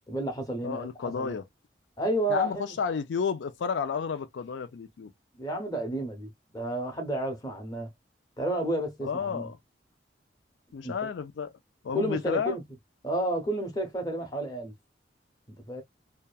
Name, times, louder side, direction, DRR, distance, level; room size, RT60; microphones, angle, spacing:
voice 1, 0.1-1.3 2.0-2.8 5.4-7.9 8.4-9.5 10.8-11.1 11.9-12.6 13.0-14.7 15.7-15.8, right 1 dB, 20° left, 0.7 m, -31 dB
voice 2, 0.6-1.4 2.3-5.1 9.0-9.6 10.7-11.5 11.8-12.6, left 6 dB, 85° left, 0.4 m, -32 dB
2.8 x 2.2 x 2.3 m
head